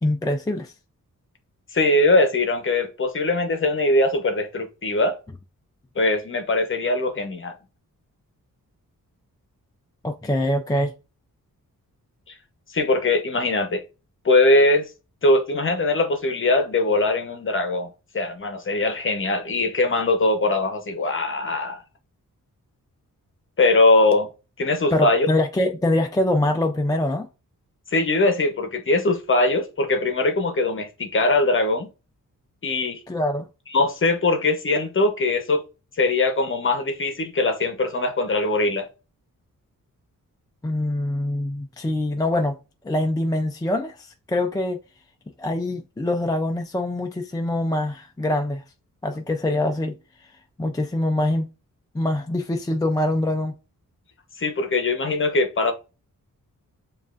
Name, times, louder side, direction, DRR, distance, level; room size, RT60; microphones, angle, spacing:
voice 1, 0.0-0.7 10.0-10.9 24.9-27.3 33.1-33.5 40.6-42.6 42.8-44.8 45.4-48.6 49.0-49.9 50.6-51.5 51.9-53.5, left 1 dB, 10° left, 0.4 m, -24 dB
voice 2, 1.7-5.2 6.0-7.5 12.7-13.8 14.2-14.9 15.2-17.9 18.1-21.8 23.6-24.3 24.6-25.3 27.9-31.9 32.6-33.0 33.7-35.6 36.0-38.9 54.4-55.7, left 2 dB, 35° left, 0.9 m, -21 dB
7.1 x 2.5 x 2.4 m
wide cardioid pair, 140°, 34 cm